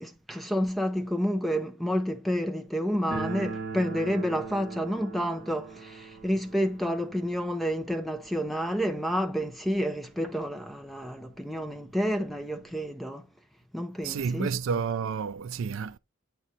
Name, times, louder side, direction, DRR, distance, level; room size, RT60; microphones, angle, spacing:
voice 1, 0.0-13.3 13.7-14.6, equal, ahead, 0.5 m, -29 dB
sound 1, 3.1-9.8 10.1-10.2 10.4-10.5 11.3-11.4 11.7-12.9, right 4 dB, 45° right, 1.7 m, -40 dB
voice 2, 14.0-16.0, right 6 dB, 65° right, 0.4 m, -30 dB
8.3 x 3.1 x 4.1 m
head